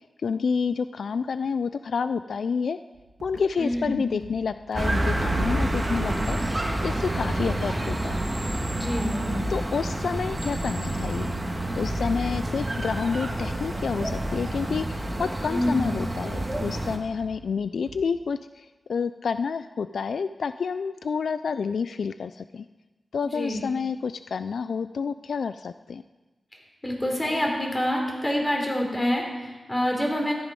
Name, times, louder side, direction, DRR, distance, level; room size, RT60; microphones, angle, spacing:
voice 1, 0.2-2.8 3.2-6.4 6.8-8.2 9.5-11.3 11.8-22.6 23.1-26.0, left 5 dB, 80° left, 12 dB, 0.3 m, -29 dB
sound 1, 2.9-14.9 15.2-18.0, right 2 dB, 75° right, 2.4 m, -47 dB
voice 2, 3.6-4.0 8.7-9.4 15.5-15.8 23.2-23.6 26.8-30.3, equal, 20° left, 0 dB, 3.5 m, -27 dB
sound 2, 4.7-17.0, right 1 dB, 20° right, 1.7 m, -28 dB
14.0 x 10.5 x 5.3 m, 1.2 s
wide cardioid pair, 75°, 0 cm